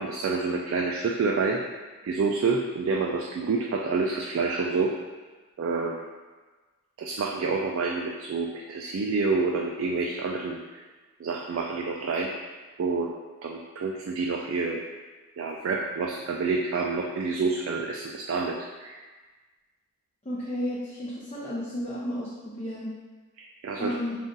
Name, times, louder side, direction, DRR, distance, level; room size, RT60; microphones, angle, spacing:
voice 1, 0.0-1.6 2.0-4.9 5.6-6.0 7.0-10.6 11.2-12.3 12.8-13.1 13.4-14.8 15.4-19.0 23.4-24.0, right 4 dB, 60° right, 0 dB, 0.3 m, -28 dB
voice 2, 20.3-22.9 23.8-24.2, equal, 30° left, -8 dB, 0.5 m, -32 dB
3.9 x 2.4 x 3.8 m, 1.3 s
head